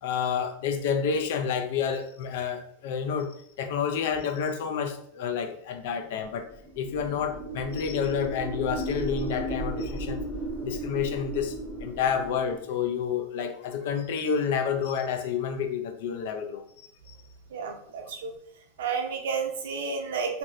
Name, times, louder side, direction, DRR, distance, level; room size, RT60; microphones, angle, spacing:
voice 1, 0.0-3.3 3.6-6.5 6.8-10.2 10.6-11.6 11.8-16.6 17.1-17.2, left 7 dB, 55° left, 7 dB, 0.4 m, -29 dB
sound 1, 6.5-12.6, right 1 dB, 5° left, 0.7 m, -35 dB
voice 2, 17.5-18.3 18.8-20.4, right 5 dB, 80° right, 3 dB, 0.6 m, -31 dB
2.7 x 2.5 x 3.1 m, 0.67 s
supercardioid pair, 175°, 0 cm